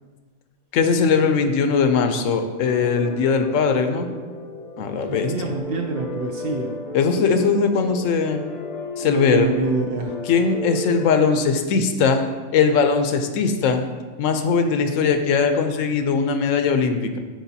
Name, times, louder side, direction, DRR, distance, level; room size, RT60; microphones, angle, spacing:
voice 1, 0.7-4.1 4.8-5.5 6.9-8.4 9.0-9.5 10.2-12.2 12.5-13.8 14.2-17.2, left 5 dB, 85° left, 7 dB, 1.0 m, -20 dB
sound 1, 2.6-11.3, left 2 dB, 40° left, 0.6 m, -34 dB
voice 2, 5.1-6.7 9.0-10.1, right 3 dB, 60° right, 3 dB, 0.6 m, -26 dB
8.9 x 4.6 x 2.7 m, 1.4 s
omnidirectional pair, 1.3 m